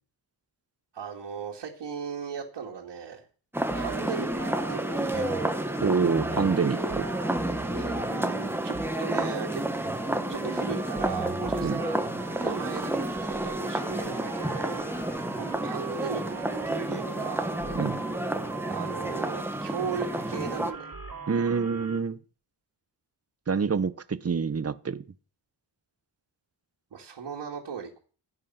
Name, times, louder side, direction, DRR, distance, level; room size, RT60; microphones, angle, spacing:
voice 1, 0.9-3.2 3.7-4.3 4.7-5.4 7.7-8.0 8.6-9.6 10.3-12.0 12.3-14.8 15.1-16.2 16.6-17.5 18.7-20.9 26.9-28.0, right 6 dB, 75° right, 2.6 m, -37 dB
sound 1, 3.5-20.7, right 1 dB, 5° right, 1.4 m, -31 dB
sound 2, 3.7-22.0, right 4 dB, 55° right, 2.5 m, -39 dB
voice 2, 5.8-7.1 11.6-11.8 17.7-18.0 21.3-22.2 23.5-25.0, right 5 dB, 35° right, 1.0 m, -27 dB
16.0 x 8.3 x 5.8 m
wide cardioid pair, 90°, 42 cm